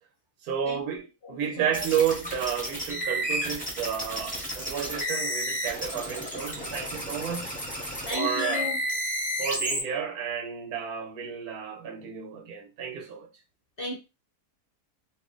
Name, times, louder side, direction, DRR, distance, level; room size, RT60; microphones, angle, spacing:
voice 1, 0.4-7.6 8.1-8.7 9.4-13.3, right 8 dB, 75° right, 1.2 m, -31 dB
voice 2, 1.2-1.7 8.0-8.8 13.8-14.0, left 2 dB, 50° left, 0.7 m, -34 dB
sound 1, 1.7-9.8, equal, 5° left, 0.8 m, -32 dB
2.9 x 2.4 x 3.7 m
omnidirectional pair, 1.6 m